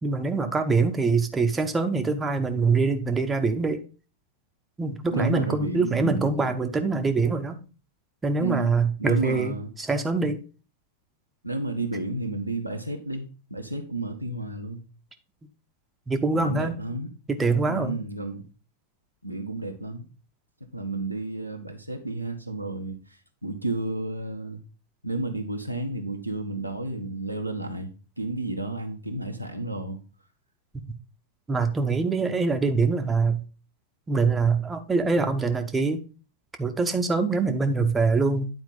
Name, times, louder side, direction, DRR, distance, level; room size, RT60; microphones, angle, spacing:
voice 1, 0.0-3.8 4.8-7.6 8.2-10.4 16.1-16.8 17.3-18.0 31.5-33.4 34.1-36.0 36.6-38.5, right 4 dB, 15° right, 6 dB, 0.8 m, -24 dB
voice 2, 5.1-6.5 8.4-8.7 9.0-9.7 11.4-14.8 16.3-17.1 17.7-18.5 19.2-20.1 20.7-24.6 25.0-30.0, right 2 dB, 90° right, 3 dB, 1.0 m, -32 dB
9.4 x 4.4 x 3.9 m, 0.34 s
figure-of-eight pair, 90°, 0 cm